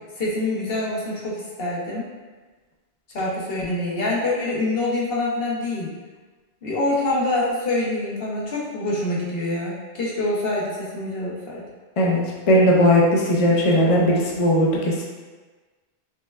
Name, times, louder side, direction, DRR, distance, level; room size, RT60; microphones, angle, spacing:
voice 1, 0.1-2.0 3.1-5.9 6.6-11.6, left 2 dB, 65° left, -5 dB, 1.1 m, -25 dB
voice 2, 12.5-15.0, equal, 45° left, -3 dB, 0.5 m, -18 dB
5.4 x 2.2 x 2.3 m, 1.3 s
omnidirectional pair, 1.1 m